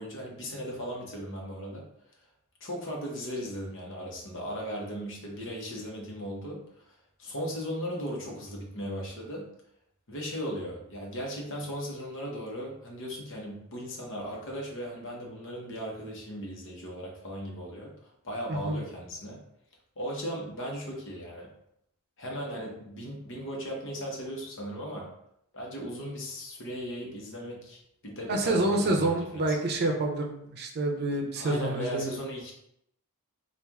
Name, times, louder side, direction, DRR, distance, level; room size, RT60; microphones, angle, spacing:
voice 1, 0.0-1.8 2.6-6.8 7.2-9.4 10.1-17.9 18.2-19.4 20.0-21.5 22.2-25.1 25.5-29.6 31.4-32.5, equal, 60° left, -1 dB, 1.1 m, -37 dB
voice 2, 18.5-18.8 28.3-32.1, right 2 dB, 45° right, 2 dB, 0.6 m, -28 dB
4.4 x 2.5 x 3.5 m, 0.74 s
head